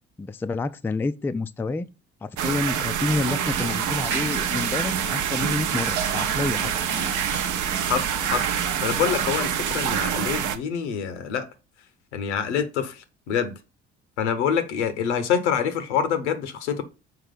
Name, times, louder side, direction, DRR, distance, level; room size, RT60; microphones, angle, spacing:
voice 1, 0.2-1.9 2.2-6.6, left 3 dB, 5° left, 0.3 m, -28 dB
sound 1, 2.4-10.6, right 9 dB, 60° right, 0.8 m, -26 dB
sound 2, 3.1-9.9, right 5 dB, 80° right, 1.1 m, -34 dB
voice 2, 7.9-8.5 8.8-11.5 12.1-13.5 14.2-16.8, left 7 dB, 80° left, 0.9 m, -26 dB
5.8 x 4.7 x 3.7 m
hypercardioid pair, 50°, 34 cm